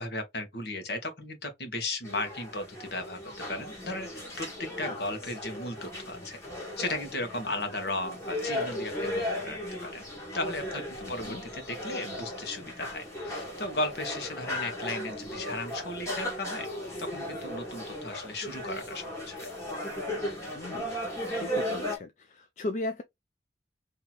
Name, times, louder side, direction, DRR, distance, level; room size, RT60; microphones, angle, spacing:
voice 1, 0.0-3.2 3.5-4.1 4.4-6.4 6.8-10.0 10.3-16.7 17.0-19.5, left 2 dB, 60° left, 1.2 m, -36 dB
sound 1, 2.0-22.0, left 1 dB, 15° left, 1.4 m, -36 dB
voice 2, 11.0-11.4 20.5-20.9 21.4-23.0, left 2 dB, 40° left, 0.4 m, -37 dB
2.9 x 2.8 x 3.9 m
head